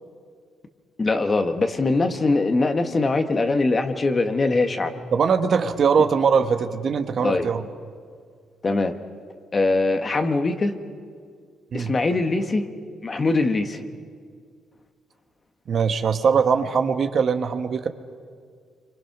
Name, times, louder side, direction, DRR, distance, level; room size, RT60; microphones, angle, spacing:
voice 1, 1.0-5.0 7.2-7.5 8.6-9.0 9.5-10.7 11.7-12.7 13.0-13.8, left 3 dB, 30° left, 7 dB, 1.6 m, -22 dB
voice 2, 5.1-7.6 11.7-11.9 15.7-17.9, right 6 dB, 55° right, 7 dB, 1.4 m, -21 dB
27.5 x 24.5 x 6.1 m, 2.1 s
cardioid pair, 90°, 0 cm